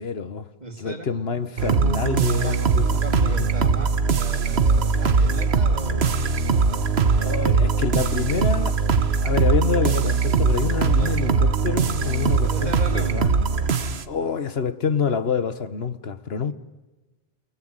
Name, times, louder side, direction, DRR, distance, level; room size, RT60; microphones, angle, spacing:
voice 1, 0.0-0.5 0.8-3.5 7.2-8.8 9.2-13.3 14.0-16.5, left 6 dB, 75° left, 1.5 m, -27 dB
voice 2, 0.6-1.1 2.4-2.6 3.0-6.5 10.9-11.1 12.5-13.5, right 2 dB, 45° right, 3.0 m, -35 dB
sound 1, 1.6-14.0, right 5 dB, 90° right, 1.4 m, -21 dB
29.0 x 20.0 x 9.0 m
omnidirectional pair, 1.0 m